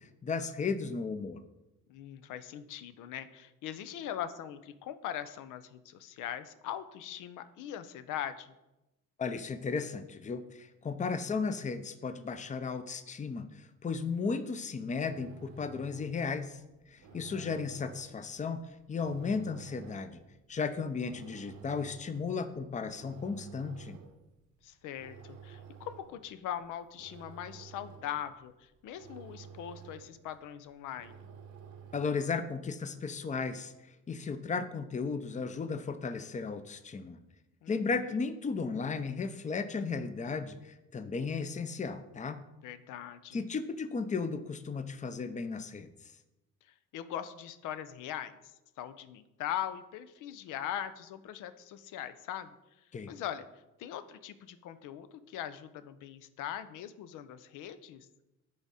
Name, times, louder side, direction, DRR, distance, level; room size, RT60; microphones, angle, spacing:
voice 1, 0.0-1.4 9.2-16.6 16.9-18.6 18.9-20.2 20.5-24.0 31.9-33.7 34.1-37.2 37.7-42.4 43.3-45.9 52.9-53.1, left 5 dB, 25° left, 10 dB, 0.5 m, -35 dB
voice 2, 1.9-8.5 17.1-17.6 24.6-31.2 37.6-37.8 42.6-43.4 46.6-52.5 53.1-58.1, left 10 dB, 90° left, 12 dB, 0.5 m, -41 dB
sound 1, 14.9-32.3, right 7 dB, 75° right, 0.8 m, -53 dB
9.5 x 3.6 x 4.1 m, 0.96 s
cardioid pair, 90°, 30 cm